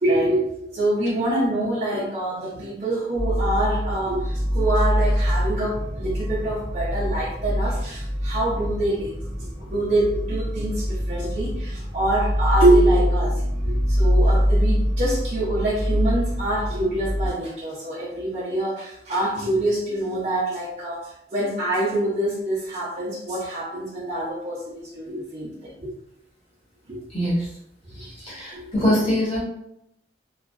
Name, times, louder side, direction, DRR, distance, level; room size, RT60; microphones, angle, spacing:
voice 1, 0.0-9.1 9.6-25.9 26.9-27.0 27.9-28.0 28.5-28.7, right 1 dB, 40° right, -7 dB, 0.6 m, -25 dB
sound 1, 3.2-17.3, equal, 20° left, 0.9 m, -24 dB
voice 2, 27.1-27.5 28.0-29.4, left 1 dB, 35° left, -8 dB, 1.2 m, -23 dB
2.4 x 2.3 x 2.3 m, 0.76 s
head